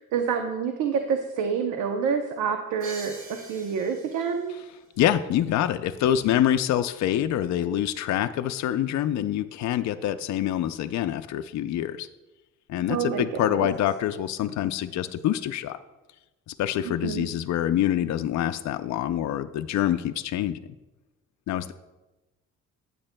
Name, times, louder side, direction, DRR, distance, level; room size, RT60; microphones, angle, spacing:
voice 1, 0.0-4.6 12.9-13.7 16.8-17.3, right 6 dB, 90° right, 5 dB, 0.8 m, -28 dB
Crash cymbal, 2.8-4.7, right 3 dB, 50° right, 2.7 m, -44 dB
voice 2, 5.0-12.1 12.7-15.8 16.5-20.6 21.5-21.7, left 11 dB, 65° left, 8 dB, 0.5 m, -26 dB
15.0 x 8.6 x 2.2 m, 1.1 s
cardioid pair, 90°, 30 cm